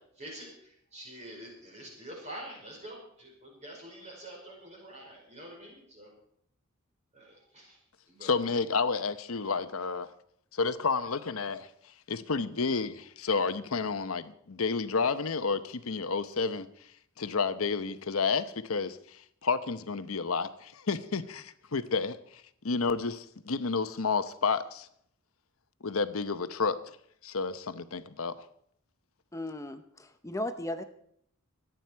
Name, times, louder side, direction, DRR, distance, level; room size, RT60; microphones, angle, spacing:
voice 1, 0.2-6.1 7.1-7.8 8.1-8.3, right 1 dB, 35° right, 4.9 m, -46 dB
voice 2, 8.2-10.1 10.5-11.7 12.1-16.7 17.2-24.9 25.8-27.0 27.2-28.4, left 4 dB, 75° left, 0.9 m, -30 dB
voice 3, 29.3-30.8, left 1 dB, 15° left, 0.7 m, -36 dB
24.5 x 9.2 x 4.6 m
head